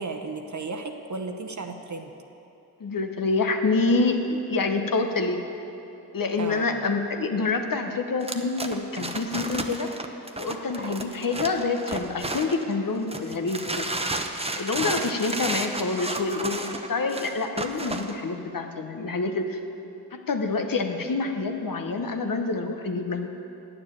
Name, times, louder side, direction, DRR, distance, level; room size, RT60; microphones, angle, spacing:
voice 1, 0.0-2.1 6.4-6.8 14.8-15.1, right 4 dB, 50° right, 4 dB, 0.9 m, -34 dB
voice 2, 2.8-5.4 6.1-9.9 10.4-13.9 14.6-19.6 20.1-23.3, left 3 dB, 60° left, 5 dB, 1.0 m, -27 dB
sound 1, 8.2-12.7 13.1-18.1, right 2 dB, 15° right, 0.8 m, -32 dB
9.0 x 7.0 x 8.4 m, 2.9 s
cardioid pair, 45°, 38 cm